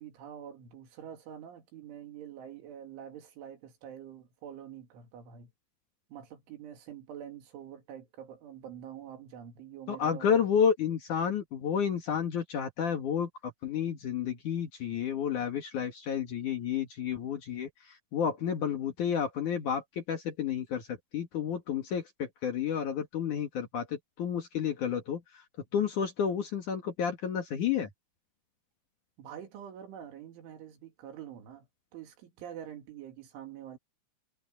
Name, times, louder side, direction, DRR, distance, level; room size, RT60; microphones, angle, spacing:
voice 1, 0.0-5.5 6.1-10.4 29.2-31.7 31.9-33.8, right 9 dB, 85° right, 5.3 m, -46 dB
voice 2, 9.9-25.2 25.7-27.9, left 8 dB, 55° left, 2.5 m, -31 dB
omnidirectional pair, 5.4 m